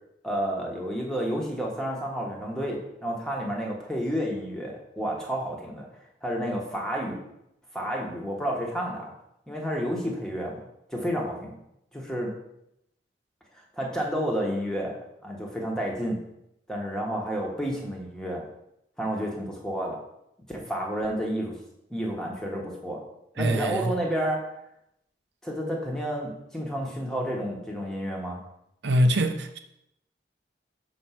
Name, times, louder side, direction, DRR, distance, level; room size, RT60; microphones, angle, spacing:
voice 1, 0.2-5.9 6.2-7.2 7.7-9.1 9.5-10.6 10.9-11.6 11.9-12.3 13.7-15.0 15.2-16.2 16.7-18.4 19.0-20.0 20.5-21.5 21.9-23.0 23.4-24.4 25.4-28.4, equal, 5° left, -2 dB, 1.2 m, -30 dB
voice 2, 23.4-23.9 28.8-29.6, right 1 dB, 80° right, 7 dB, 0.6 m, -23 dB
6.0 x 4.4 x 5.7 m, 0.82 s
head